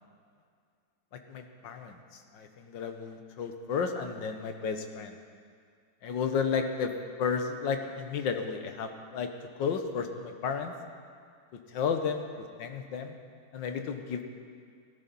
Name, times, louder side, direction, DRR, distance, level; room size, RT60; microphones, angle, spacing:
voice 1, 1.3-2.0 2.3-5.2 6.0-6.9 7.2-9.3 9.6-10.7 11.7-12.2 12.6-13.1 13.5-14.2, left 6 dB, 80° left, 6 dB, 1.6 m, -32 dB
15.5 x 13.0 x 5.4 m, 2.1 s
omnidirectional pair, 2.0 m